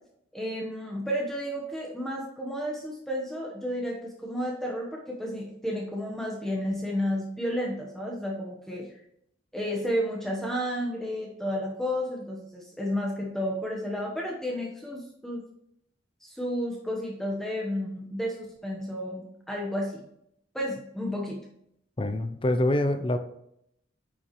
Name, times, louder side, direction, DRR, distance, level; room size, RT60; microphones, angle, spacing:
voice 1, 0.3-8.9 9.5-15.4 16.2-20.0 20.5-21.4, equal, ahead, -2 dB, 1.0 m, -32 dB
voice 2, 22.0-23.2, left 1 dB, 30° left, 9 dB, 0.6 m, -25 dB
9.8 x 7.1 x 3.1 m, 0.75 s
head